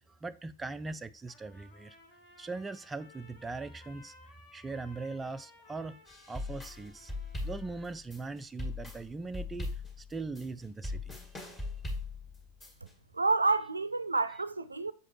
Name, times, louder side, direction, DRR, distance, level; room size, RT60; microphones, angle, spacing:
voice 1, 0.1-2.0 2.4-4.1 4.5-6.0 6.3-7.1 7.4-11.2, right 3 dB, 10° right, 0.3 m, -40 dB
Trumpet, 1.3-8.0, left 3 dB, 45° left, 1.7 m, -58 dB
sound 1, 6.1-12.9, left 2 dB, 15° left, 1.8 m, -39 dB
voice 2, 13.1-14.9, right 3 dB, 80° right, 0.4 m, -29 dB
6.9 x 4.8 x 3.0 m
figure-of-eight pair, 90°, 0 cm